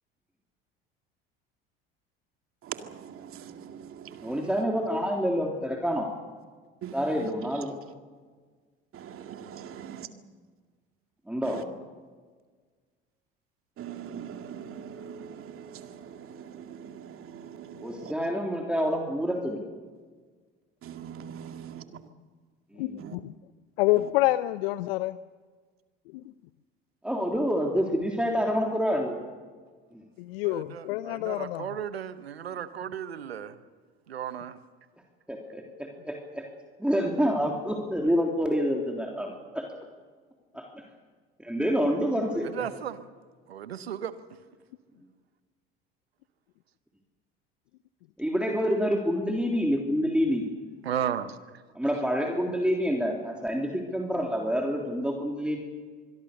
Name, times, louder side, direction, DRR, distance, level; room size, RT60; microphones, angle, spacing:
voice 1, 2.6-4.6 6.8-7.6 8.9-10.1 11.4-11.6 13.8-18.1 20.8-22.1 23.0-23.2 23.9-24.1, right 8 dB, 45° right, 2.3 m, -42 dB
voice 2, 4.2-6.1 6.9-7.7 11.3-11.6 17.8-19.6 22.7-23.0 27.0-29.2 29.9-30.0 35.3-36.4 36.8-39.8 40.5-40.8 41.4-42.7 48.2-50.4 51.8-55.6, equal, 5° right, 3.4 m, -27 dB
voice 3, 22.8-23.2 23.8-25.2 26.1-26.3 30.2-31.8, left 17 dB, 70° left, 0.7 m, -27 dB
voice 4, 30.5-33.5 34.1-34.6 42.5-43.0 43.5-44.1 50.8-51.4, right 9 dB, 90° right, 1.1 m, -34 dB
26.0 x 22.0 x 6.7 m
hypercardioid pair, 70°, 30 cm